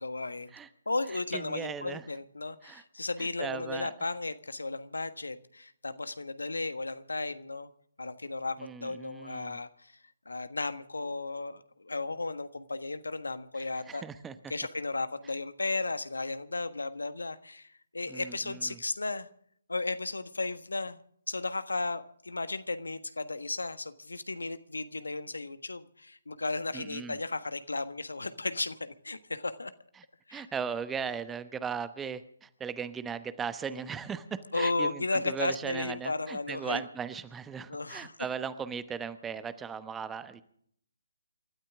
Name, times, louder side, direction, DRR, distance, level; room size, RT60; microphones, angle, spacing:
voice 1, 0.0-0.5 0.8-7.7 8.0-10.0 10.2-14.0 14.5-19.3 19.7-21.0 21.3-29.7 30.3-30.5 34.5-36.8 37.7-38.1, left 3 dB, 75° left, 12 dB, 1.4 m, -34 dB
voice 2, 1.3-2.0 2.6-2.8 3.4-3.9 8.6-9.6 13.9-14.3 18.1-18.8 26.7-27.2 30.3-40.4, right 6 dB, 10° right, 13 dB, 1.0 m, -37 dB
28.5 x 13.0 x 3.7 m, 0.65 s
figure-of-eight pair, 140°, 0 cm